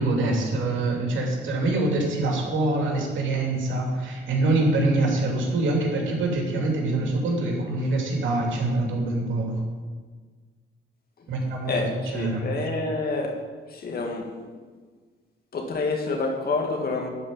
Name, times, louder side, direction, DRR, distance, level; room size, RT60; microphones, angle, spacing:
voice 1, 0.0-9.5 11.3-11.7 12.1-12.5, right 2 dB, 75° right, 0 dB, 2.9 m, -24 dB
voice 2, 11.7-13.4 13.7-14.3 15.5-17.1, left 3 dB, 50° left, 2 dB, 2.1 m, -28 dB
11.5 x 5.1 x 8.7 m, 1.5 s
cardioid pair, 90°, 20 cm